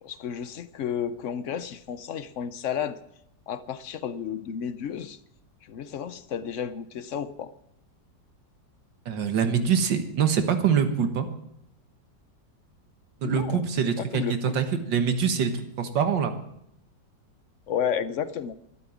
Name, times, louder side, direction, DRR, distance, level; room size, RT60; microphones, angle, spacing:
voice 1, 0.0-3.0 3.5-5.2 5.6-7.5 13.2-13.6 14.0-14.6 17.7-18.6, left 8 dB, 65° left, 14 dB, 0.7 m, -32 dB
voice 2, 9.1-11.3 13.2-16.3, right 7 dB, 80° right, 8 dB, 2.0 m, -24 dB
12.5 x 12.0 x 7.1 m, 0.79 s
omnidirectional pair, 2.0 m